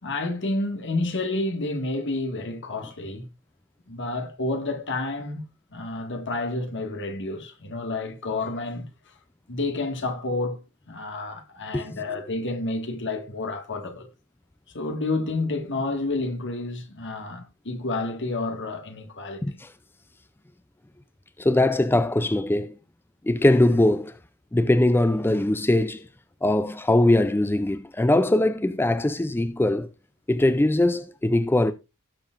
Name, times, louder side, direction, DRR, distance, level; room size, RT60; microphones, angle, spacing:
voice 1, 0.0-3.3 3.9-8.9 9.5-14.1 14.7-19.6, left 2 dB, 55° left, 1.9 m, -30 dB
voice 2, 19.4-19.7 21.4-22.7 23.2-24.1 24.5-26.1 26.4-29.9 30.3-31.7, left 1 dB, 10° left, 0.4 m, -21 dB
17.5 x 6.9 x 2.5 m
head